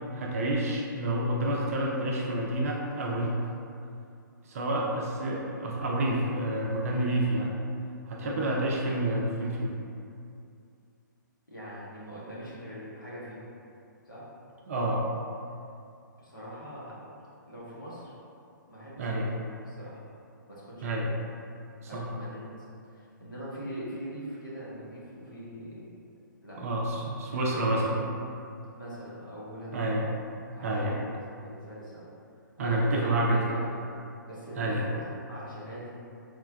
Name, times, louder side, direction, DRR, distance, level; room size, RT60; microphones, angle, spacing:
voice 1, 0.1-3.4 4.5-7.5 8.1-9.7 14.7-15.0 19.0-19.3 20.8-21.1 21.9-22.0 26.6-28.0 29.7-30.1 30.6-30.9 32.6-33.4 34.6-34.8, right 1 dB, 45° right, -2 dB, 0.4 m, -28 dB
voice 2, 11.5-13.5 14.0-14.3 16.2-17.1 17.5-18.1 18.7-20.0 20.5-21.2 21.9-26.0 26.4-26.6 26.9-27.9 28.7-29.9 30.5-32.1 32.6-33.8 34.3-35.0 35.3-36.0, equal, 75° left, -8 dB, 1.1 m, -42 dB
4.3 x 2.2 x 2.2 m, 2.5 s
figure-of-eight pair, 125°, 11 cm